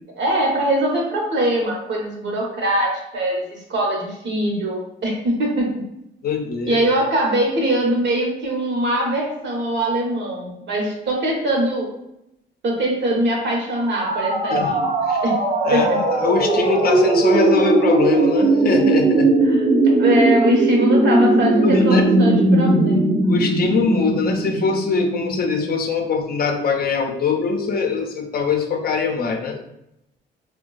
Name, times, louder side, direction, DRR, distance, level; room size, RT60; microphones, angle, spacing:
voice 1, 0.2-5.7 6.7-11.9 12.6-14.9 15.2-15.3 15.7-16.0 19.4-19.6 20.0-23.2, right 1 dB, 65° right, 0 dB, 0.9 m, -22 dB
voice 2, 6.2-6.8 14.5-14.7 15.1-15.2 15.6-19.3 21.5-22.0 23.3-29.6, left 4 dB, 50° left, 4 dB, 0.5 m, -22 dB
sound 1, 13.7-25.6, right 2 dB, 30° right, 0.6 m, -18 dB
3.5 x 2.2 x 2.3 m, 0.81 s
cardioid pair, 90°, 20 cm